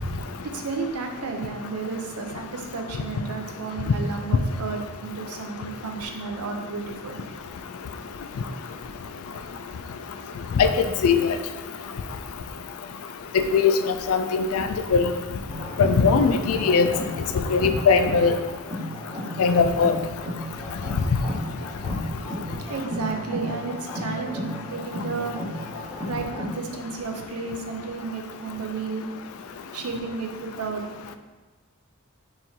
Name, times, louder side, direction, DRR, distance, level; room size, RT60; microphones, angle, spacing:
voice 1, 0.4-7.2 22.7-25.4 26.1-29.1 29.7-30.8, right 4 dB, 90° right, 4 dB, 0.6 m, -32 dB
voice 2, 10.6-11.2 13.5-15.1 15.8-16.9 17.5-18.4 19.4-19.9, left 5 dB, 70° left, 8 dB, 0.3 m, -20 dB
sound 1, 15.5-26.5, equal, 10° right, 1.2 m, -34 dB
4.4 x 3.8 x 2.7 m, 1.3 s
head